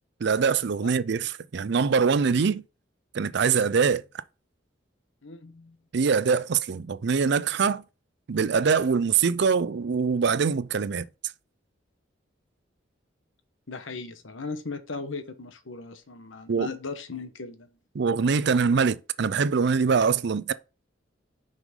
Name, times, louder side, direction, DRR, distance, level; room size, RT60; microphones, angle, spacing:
voice 1, 0.2-2.6 3.1-4.0 5.9-7.8 8.3-11.1 16.5-16.7 17.9-20.5, right 5 dB, 60° right, 0.5 m, -23 dB
voice 2, 5.2-5.8 13.7-17.7, left 4 dB, 90° left, 1.1 m, -37 dB
6.0 x 5.6 x 3.7 m
head